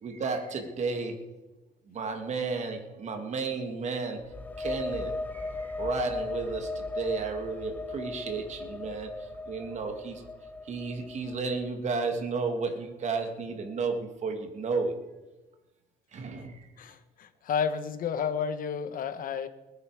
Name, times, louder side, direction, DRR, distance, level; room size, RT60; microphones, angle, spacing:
voice 1, 0.0-1.2 1.9-4.2 4.6-10.2 10.7-14.9 16.1-16.7, right 4 dB, 45° right, 5 dB, 2.2 m, -33 dB
sound 1, 4.2-11.8, left 3 dB, 10° left, 0.7 m, -37 dB
voice 2, 16.8-19.5, left 7 dB, 55° left, 11 dB, 1.3 m, -31 dB
20.5 x 9.7 x 4.9 m, 1.1 s
cardioid pair, 110°, 17 cm